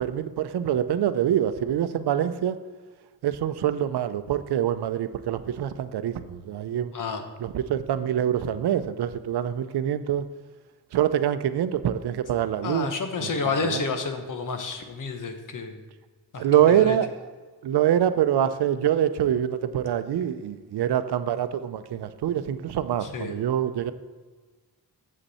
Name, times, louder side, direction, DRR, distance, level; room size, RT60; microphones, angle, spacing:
voice 1, 0.0-2.6 3.2-6.9 7.4-10.3 10.9-12.9 13.2-13.8 16.4-17.1 17.6-23.9, right 10 dB, 80° right, 12 dB, 0.6 m, -25 dB
voice 2, 12.6-15.8 16.3-17.0 23.0-23.4, left 4 dB, 50° left, 6 dB, 1.1 m, -30 dB
8.0 x 7.4 x 4.2 m, 1.4 s
wide cardioid pair, 150°, 39 cm